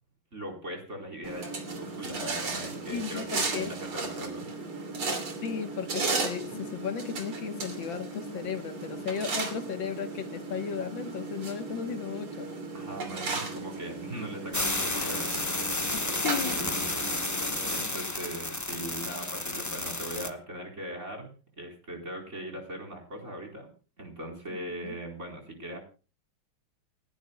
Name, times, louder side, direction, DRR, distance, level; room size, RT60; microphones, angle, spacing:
voice 1, 0.3-4.5 12.7-15.5 16.3-16.8 17.7-21.3 21.6-23.7 24.0-25.8, right 1 dB, 35° right, 4.5 m, -40 dB
sound 1, 1.2-17.9, right 3 dB, 85° right, 3.6 m, -36 dB
voice 2, 2.9-3.7 5.1-12.5 15.9-16.6 24.8-25.0, left 7 dB, 65° left, 2.0 m, -35 dB
sound 2, 14.5-20.3, left 2 dB, 20° left, 0.4 m, -32 dB
29.0 x 11.0 x 2.3 m
omnidirectional pair, 2.3 m